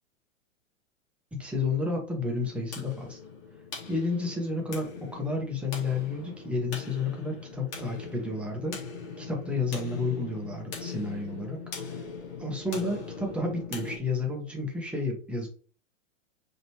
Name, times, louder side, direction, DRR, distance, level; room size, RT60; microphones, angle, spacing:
voice 1, 1.3-3.2 3.9-8.8 9.2-12.0 12.4-15.5, left 3 dB, 5° right, 0 dB, 1.2 m, -31 dB
sound 1, 2.4-14.0, left 5 dB, 50° left, 2.2 m, -41 dB
5.1 x 3.1 x 3.0 m, 0.40 s
figure-of-eight pair, 105°, 38 cm